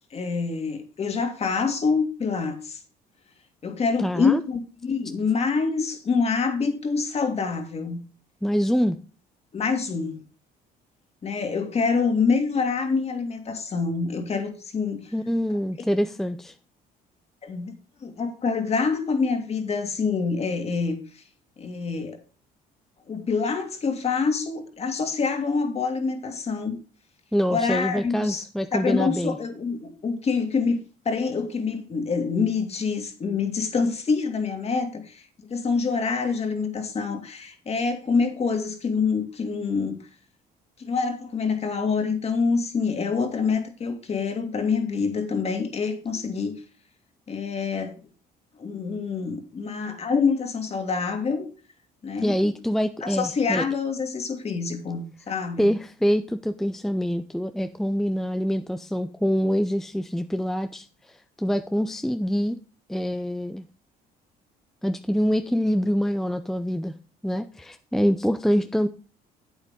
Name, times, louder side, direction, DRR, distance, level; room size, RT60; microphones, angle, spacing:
voice 1, 0.1-2.8 3.6-8.0 9.5-10.2 11.2-15.1 17.4-17.7 18.0-21.2 21.6-22.2 23.1-26.8 27.5-28.4 28.7-30.8 31.1-40.0 40.8-46.5 47.3-48.0 48.6-51.5 52.0-52.5 53.0-55.7, left 5 dB, 40° left, 2.4 m, -26 dB
voice 2, 4.0-4.4 8.4-9.0 15.1-16.5 27.3-29.4 52.2-53.6 55.6-62.6 62.9-63.6 64.8-66.9 67.2-68.9, equal, ahead, 0.5 m, -25 dB
8.8 x 8.2 x 3.8 m
cardioid pair, 110°, 17 cm